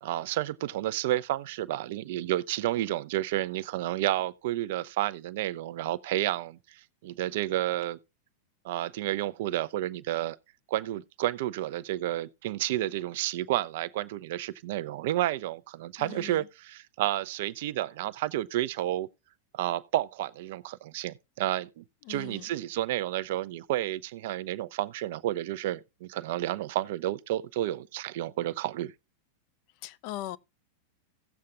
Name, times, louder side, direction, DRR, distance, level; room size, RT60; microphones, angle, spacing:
voice 1, 0.0-8.0 8.6-10.4 10.7-19.1 19.5-28.9, right 14 dB, 50° right, 0.5 m, -31 dB
voice 2, 16.0-16.5 22.0-22.5 29.8-30.4, left 15 dB, 45° left, 0.5 m, -39 dB
17.0 x 7.4 x 2.4 m
figure-of-eight pair, 90°, 0 cm